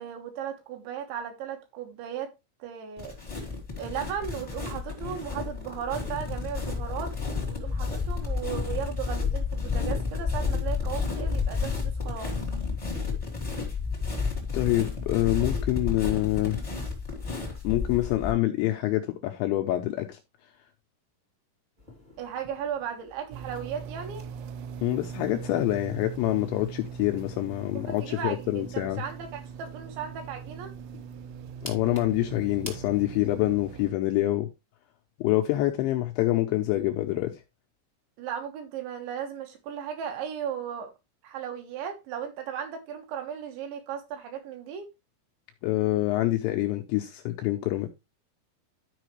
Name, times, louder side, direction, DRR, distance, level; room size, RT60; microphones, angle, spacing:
voice 1, 0.0-2.3 2.6-3.2 3.8-7.1 7.4-12.3 22.2-24.3 27.7-30.7 38.2-40.9 41.2-44.9, right 8 dB, 70° right, 3.4 m, -36 dB
sound 1, 3.0-18.3, left 4 dB, 25° left, 0.7 m, -31 dB
voice 2, 14.5-16.6 17.6-20.2 24.8-29.0 31.6-34.5 35.2-37.4 45.6-47.9, left 16 dB, 85° left, 2.7 m, -26 dB
sound 2, 21.8-32.7, left 1 dB, 25° right, 0.8 m, -50 dB
sound 3, 23.3-33.9, right 7 dB, 85° right, 2.7 m, -41 dB
12.5 x 5.0 x 3.1 m
omnidirectional pair, 5.9 m